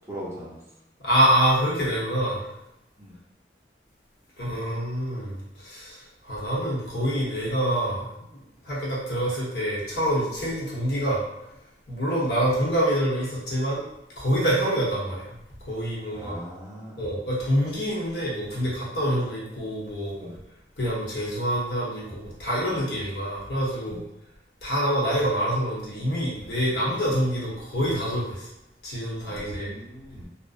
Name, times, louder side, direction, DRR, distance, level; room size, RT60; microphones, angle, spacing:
voice 1, 0.1-0.6 3.0-3.1 16.1-17.0 20.2-20.3 23.9-24.0 29.3-30.3, equal, 15° right, -6 dB, 0.5 m, -40 dB
voice 2, 1.0-2.5 4.4-8.2 8.6-11.5 11.9-13.8 14.2-15.3 15.6-16.4 17.0-20.1 20.8-24.0 24.6-28.5 28.8-29.7, equal, 65° left, -6 dB, 0.9 m, -26 dB
2.6 x 2.1 x 2.4 m, 0.89 s
head